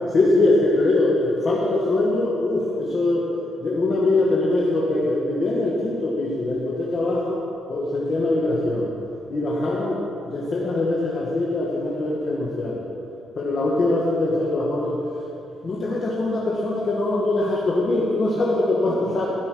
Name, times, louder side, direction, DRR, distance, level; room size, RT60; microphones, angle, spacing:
voice 1, 0.1-3.2 3.6-7.4 7.7-8.9 9.3-12.9 13.4-15.0 15.6-19.3, left 2 dB, 45° left, -5 dB, 1.8 m, -22 dB
16.5 x 5.6 x 6.2 m, 2.7 s
cardioid pair, 90°, 0 cm